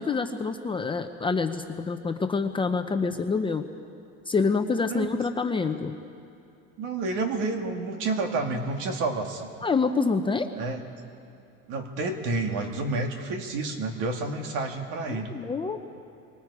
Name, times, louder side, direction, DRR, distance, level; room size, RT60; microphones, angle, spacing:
voice 1, 0.0-3.6 4.3-6.0 9.6-10.5 15.1-15.8, left 4 dB, 15° left, 6 dB, 0.7 m, -27 dB
voice 2, 6.8-9.5 10.6-10.8 11.7-15.3, right 3 dB, 75° right, 3 dB, 2.3 m, -30 dB
28.0 x 24.5 x 4.9 m, 2.7 s
cardioid pair, 140°, 31 cm